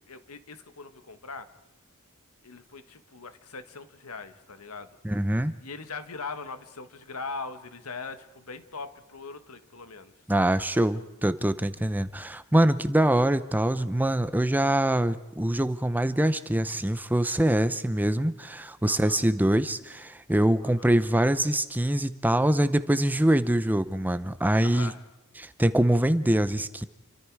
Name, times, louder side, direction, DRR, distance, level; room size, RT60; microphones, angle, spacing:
voice 1, 0.0-1.5 2.4-5.0 5.6-10.1 10.7-10.9 18.8-19.2 20.6-20.9 24.6-25.0, left 4 dB, 80° left, 10 dB, 1.5 m, -41 dB
voice 2, 5.0-5.5 10.3-24.9 25.4-26.8, right 1 dB, 10° right, 12 dB, 0.7 m, -24 dB
29.5 x 23.5 x 4.8 m, 1.1 s
head